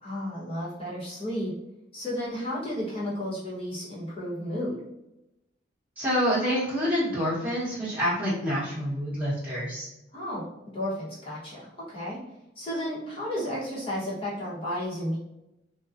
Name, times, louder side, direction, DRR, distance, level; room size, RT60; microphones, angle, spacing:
voice 1, 0.0-1.5 1.9-4.8 10.1-10.4 10.7-12.2 12.6-15.2, equal, 30° left, -8 dB, 0.9 m, -32 dB
voice 2, 6.0-9.9, equal, 10° right, -9 dB, 0.9 m, -27 dB
2.4 x 2.2 x 2.5 m, 0.89 s
head